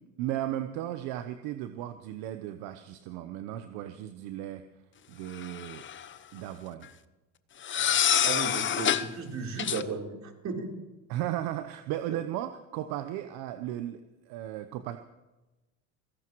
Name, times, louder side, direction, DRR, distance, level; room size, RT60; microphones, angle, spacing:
voice 1, 0.2-4.6 5.1-5.8 6.3-6.9 11.1-15.0, right 12 dB, 70° right, 8 dB, 1.0 m, -35 dB
sound 1, 5.4-6.1 7.6-9.1 9.6-9.8, left 9 dB, 30° left, 0.8 m, -26 dB
voice 2, 8.2-10.7, right 4 dB, 45° right, 0 dB, 3.9 m, -35 dB
25.0 x 16.5 x 3.1 m, 1.1 s
supercardioid pair, 95°, 39 cm